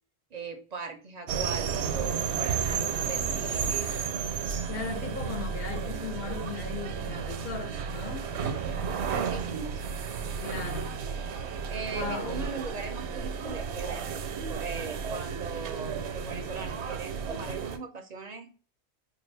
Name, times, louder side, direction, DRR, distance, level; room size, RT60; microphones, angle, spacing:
voice 1, 0.3-3.9 9.0-9.9 11.7-18.5, right 4 dB, 50° right, 0.5 m, -39 dB
sound 1, 1.3-17.8, right 6 dB, 85° right, 0.9 m, -32 dB
voice 2, 4.7-8.3 10.4-11.1 11.9-12.5, left 5 dB, 60° left, 1.1 m, -37 dB
4.5 x 2.3 x 3.2 m
omnidirectional pair, 1.1 m